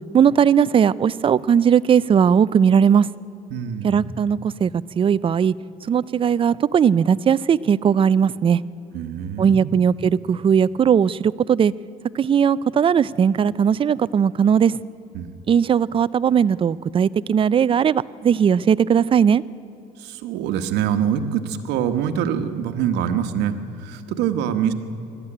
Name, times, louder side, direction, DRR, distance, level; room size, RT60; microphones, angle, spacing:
voice 1, 0.1-3.1 3.8-4.7 5.0-5.5 5.9-8.6 9.4-11.7 12.1-14.8 15.5-19.4, right 7 dB, 30° right, 18 dB, 0.4 m, -18 dB
voice 2, 3.5-4.1 8.9-9.7 15.1-15.3 20.0-24.7, right 8 dB, 90° right, 8 dB, 1.2 m, -25 dB
20.5 x 13.5 x 9.9 m, 2.9 s
cardioid pair, 110°, 17 cm